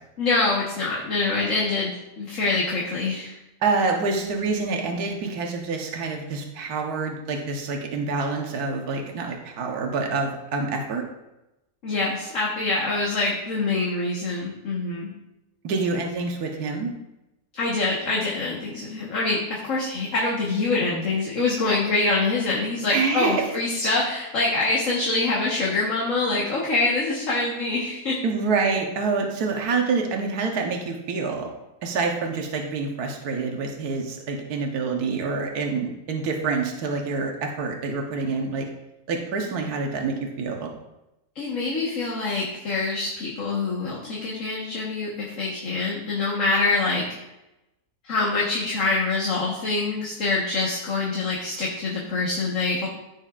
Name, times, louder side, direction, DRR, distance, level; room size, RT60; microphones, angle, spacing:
voice 1, 0.2-3.4 11.8-15.1 17.5-28.2 41.4-47.0 48.0-52.9, left 3 dB, 50° left, -4 dB, 1.8 m, -25 dB
voice 2, 3.6-11.0 15.6-16.9 22.9-23.5 28.2-31.5 31.8-38.7 39.1-40.7, right 4 dB, 70° right, 1 dB, 1.6 m, -27 dB
14.5 x 6.2 x 2.5 m, 0.93 s
omnidirectional pair, 1.7 m